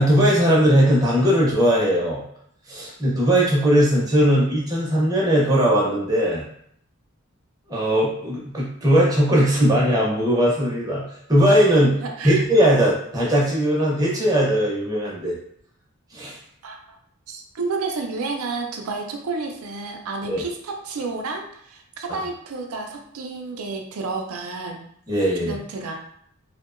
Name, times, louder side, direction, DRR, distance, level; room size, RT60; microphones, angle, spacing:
voice 1, 0.0-2.2 2.7-6.4 7.7-12.0 12.2-15.3 16.1-16.4 20.2-20.4 22.1-22.2 25.1-25.5, equal, 15° right, -4 dB, 0.6 m, -19 dB
voice 2, 12.0-12.4 16.6-17.0 17.3-24.8 25.4-25.9, right 3 dB, 85° right, 2 dB, 0.4 m, -30 dB
2.7 x 2.1 x 2.4 m, 0.69 s
head